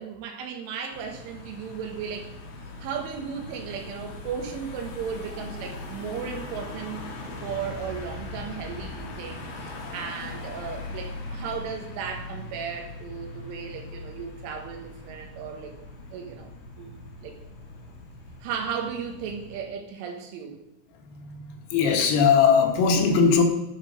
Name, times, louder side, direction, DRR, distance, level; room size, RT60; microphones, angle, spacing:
voice 1, 0.0-2.3 2.8-7.0 7.4-15.8 16.1-16.5 16.8-16.9 17.2-17.4 18.4-20.6, right 7 dB, 75° right, 4 dB, 3.9 m, -35 dB
Car passing by / Engine, 0.9-19.6, left 2 dB, 65° left, 4.3 m, -40 dB
voice 2, 21.0-23.4, left 6 dB, 85° left, 3 dB, 4.4 m, -20 dB
11.5 x 10.0 x 5.3 m, 0.96 s
omnidirectional pair, 5.8 m